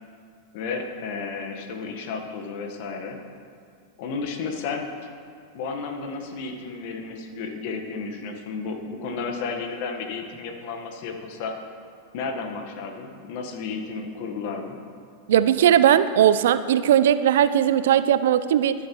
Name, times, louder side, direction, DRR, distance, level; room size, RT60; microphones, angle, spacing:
voice 1, 0.5-3.2 4.0-4.9 5.5-11.5 12.1-14.8, left 4 dB, 60° left, 4 dB, 1.1 m, -32 dB
voice 2, 15.3-18.7, right 10 dB, 75° right, 14 dB, 0.3 m, -18 dB
13.5 x 7.2 x 3.0 m, 2.3 s
hypercardioid pair, 100°, 0 cm